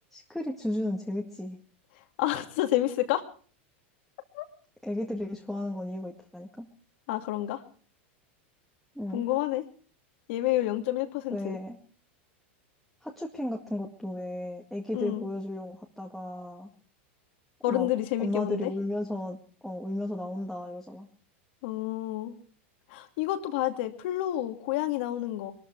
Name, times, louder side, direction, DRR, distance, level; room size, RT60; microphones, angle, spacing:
voice 1, 0.1-1.6 4.8-6.7 9.0-9.3 11.3-11.8 13.0-16.7 17.7-17.9 18.2-19.4 19.6-21.1, left 1 dB, ahead, 0 dB, 2.0 m, -34 dB
voice 2, 2.2-3.2 4.3-4.5 7.1-7.6 9.1-9.6 10.3-11.6 14.9-15.3 17.6-18.7 21.6-22.3 22.9-25.5, left 14 dB, 60° left, 6 dB, 2.6 m, -29 dB
22.0 x 13.5 x 4.7 m, 0.43 s
supercardioid pair, 140°, 6 cm